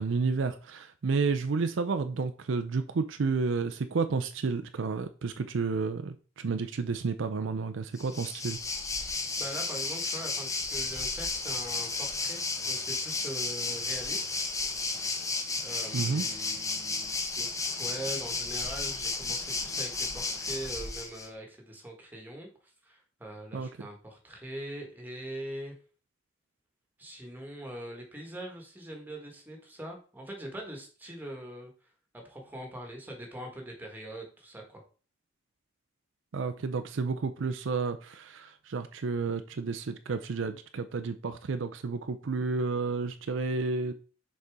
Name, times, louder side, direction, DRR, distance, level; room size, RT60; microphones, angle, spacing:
voice 1, 0.0-8.6 15.9-16.3 23.5-23.9 36.3-43.9, right 4 dB, 70° right, 0.5 m, -31 dB
Waves surf, 8.0-21.3, left 3 dB, 15° left, 0.7 m, -33 dB
voice 2, 9.4-14.3 15.6-22.5 22.8-25.7 27.0-31.7 32.1-34.8, right 1 dB, 10° right, 1.5 m, -42 dB
6.6 x 4.3 x 3.6 m
head